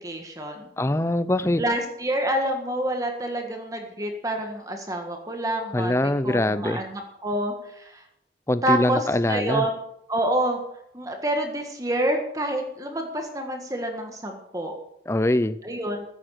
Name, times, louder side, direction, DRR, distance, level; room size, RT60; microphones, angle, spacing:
voice 1, 0.0-0.7 1.6-8.0 8.6-9.7 10.1-10.6 10.9-14.8 15.6-16.0, right 1 dB, 20° right, 3 dB, 1.7 m, -28 dB
voice 2, 0.8-1.6 5.7-6.8 8.5-9.6 15.1-15.6, left 1 dB, 15° left, 14 dB, 0.4 m, -23 dB
15.0 x 9.0 x 6.6 m, 0.78 s
head